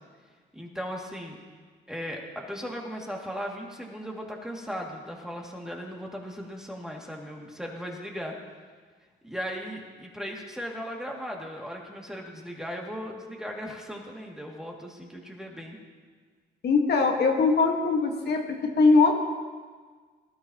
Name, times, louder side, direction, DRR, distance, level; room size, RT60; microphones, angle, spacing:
voice 1, 0.5-1.4 1.9-8.4 9.2-15.8, equal, 5° right, -1 dB, 2.2 m, -37 dB
voice 2, 16.6-19.1, left 4 dB, 55° left, 2 dB, 1.5 m, -21 dB
19.5 x 12.5 x 2.9 m, 1.5 s
cardioid pair, 90°, 20 cm